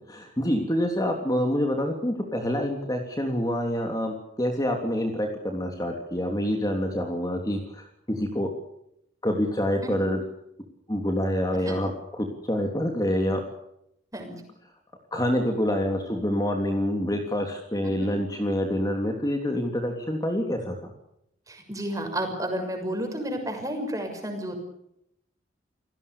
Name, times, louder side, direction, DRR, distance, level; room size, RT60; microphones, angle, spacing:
voice 1, 0.1-8.5 9.2-10.2 10.9-13.4 15.1-20.7, equal, 20° left, 3 dB, 3.2 m, -27 dB
voice 2, 21.5-24.6, right 1 dB, 20° right, 4 dB, 6.5 m, -32 dB
29.5 x 19.0 x 6.9 m, 0.77 s
head